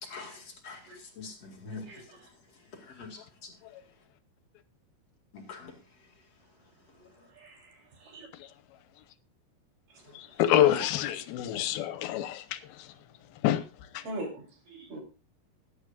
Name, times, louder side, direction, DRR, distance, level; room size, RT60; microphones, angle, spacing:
voice 1, 0.0-1.8 2.9-3.5 5.3-5.7 10.1-10.2, left 4 dB, 45° left, 2.9 m, -44 dB
voice 2, 1.9-2.2 7.4-7.6 8.0-8.3 10.5-10.8 14.0-14.3 14.7-15.0, right 2 dB, 60° right, 4.9 m, -38 dB
voice 3, 10.2-12.6 13.4-13.6 13.9-14.0, left 12 dB, 90° left, 2.8 m, -26 dB
20.0 x 10.0 x 2.5 m
omnidirectional pair, 4.3 m